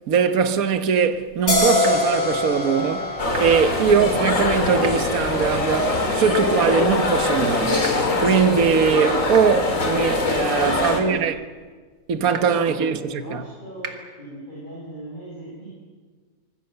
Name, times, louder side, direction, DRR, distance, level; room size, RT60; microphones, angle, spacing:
voice 1, 0.1-11.3 12.1-13.4, right 7 dB, 60° right, 1.6 m, -21 dB
sound 1, 1.5-8.8, left 2 dB, 80° left, 7.4 m, -27 dB
sound 2, 1.8-1.9 3.3-3.4 4.8-4.9 6.3-6.4 7.8-7.9 9.3-9.4 10.8-10.9 12.3-12.4 13.8-13.9, right 4 dB, 80° right, 2.6 m, -31 dB
sound 3, 3.2-11.0, left 2 dB, 55° left, 3.2 m, -22 dB
voice 2, 9.8-11.0 11.3-11.4 12.2-15.8, right 1 dB, 30° left, 7.3 m, -38 dB
25.5 x 20.0 x 8.0 m
omnidirectional pair, 1.7 m